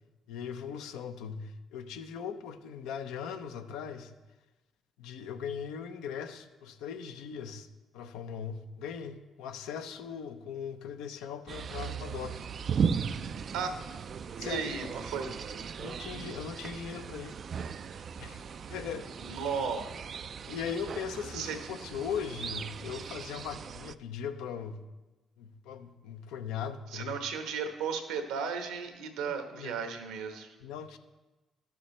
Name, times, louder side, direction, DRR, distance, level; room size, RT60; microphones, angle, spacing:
voice 1, 0.3-4.1 5.0-7.7 7.9-12.5 14.4-14.7 15.8-17.3 18.2-18.4 18.7-19.1 20.5-24.8 25.4-27.1 29.5-29.7 30.6-31.0, left 7 dB, 80° left, 8 dB, 0.7 m, -39 dB
sound 1, 11.5-23.9, right 6 dB, 55° right, 0.3 m, -37 dB
voice 2, 14.4-15.3 19.2-20.0 21.3-21.6 26.9-30.5, right 6 dB, 80° right, 6 dB, 1.1 m, -35 dB
13.0 x 6.8 x 3.2 m, 1.1 s
hypercardioid pair, 55°, 0 cm